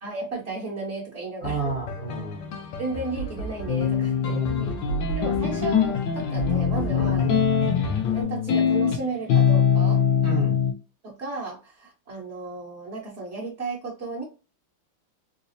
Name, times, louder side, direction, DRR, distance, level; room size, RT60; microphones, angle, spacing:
voice 1, 0.0-1.7 2.8-4.4 5.2-7.4 8.0-10.0 11.0-14.2, right 3 dB, 40° right, -6 dB, 1.1 m, -34 dB
sound 1, 1.4-8.2, right 1 dB, 85° left, 1.6 m, -34 dB
voice 2, 1.4-2.5 4.3-4.8 6.9-7.8 10.2-10.6, right 4 dB, 20° right, -2 dB, 0.9 m, -32 dB
sound 2, 3.7-10.7, left 7 dB, 65° left, 1.2 m, -22 dB
4.0 x 2.3 x 2.7 m, 0.31 s
omnidirectional pair, 2.4 m